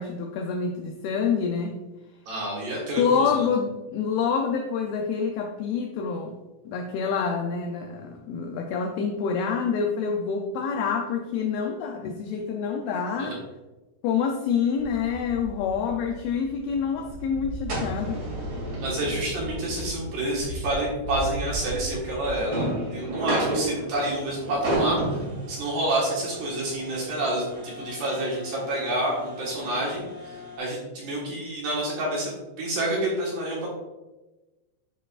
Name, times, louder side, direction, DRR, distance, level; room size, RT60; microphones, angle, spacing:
voice 1, 0.0-1.8 3.0-6.3 6.7-13.4 14.0-18.2, left 6 dB, 85° left, 3 dB, 2.2 m, -27 dB
voice 2, 2.3-3.5 13.2-13.4 18.8-25.2 25.5-33.7, right 1 dB, 60° right, -4 dB, 2.8 m, -28 dB
sound 1, 14.8-30.6, right 1 dB, 40° right, 2.2 m, -33 dB
11.0 x 4.9 x 2.4 m, 1.1 s
omnidirectional pair, 5.1 m